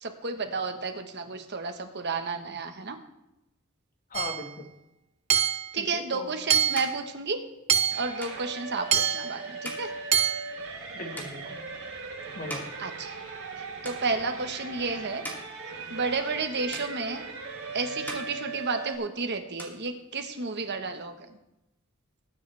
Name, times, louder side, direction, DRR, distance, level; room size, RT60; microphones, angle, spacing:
voice 1, 0.0-3.0 5.7-7.4 7.9-9.9 12.8-13.1 13.6-15.2 15.9-17.2 17.7-21.1, right 4 dB, 50° right, 6 dB, 1.3 m, -32 dB
voice 2, 4.1-4.7 5.8-6.3 10.9-11.6 12.4-12.8, left 2 dB, 40° left, 4 dB, 1.8 m, -39 dB
Hammer / Chink clink, 4.1-4.5 5.3-5.7 6.5-6.9 7.7-8.1 8.9-9.3 10.1-10.5, right 8 dB, 30° right, 0.5 m, -25 dB
sound 1, 5.9-13.6 13.8-14.5 15.0-16.4 16.7-17.6 17.9-19.1 19.4-20.5, equal, 10° left, 2.8 m, -44 dB
sound 2, 7.9-18.9, right 4 dB, 75° right, 3.9 m, -39 dB
20.5 x 9.5 x 3.5 m, 0.92 s
head